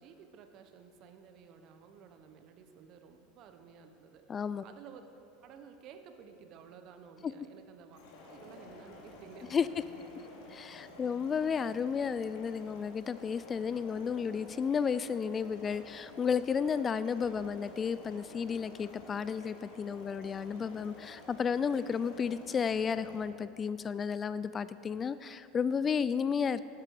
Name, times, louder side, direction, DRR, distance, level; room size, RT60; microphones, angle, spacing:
voice 1, 0.0-5.1 5.4-8.0 8.3-10.2 11.0-11.2, right 7 dB, 50° right, 7 dB, 1.2 m, -54 dB
voice 2, 4.3-4.6 7.2-7.3 9.5-9.7 10.5-26.6, left 6 dB, 30° left, 15 dB, 0.3 m, -32 dB
sound 1, 7.9-23.2, left 2 dB, 70° left, 2.7 m, -52 dB
12.5 x 11.0 x 4.9 m, 2.7 s
hypercardioid pair, 90°, 0 cm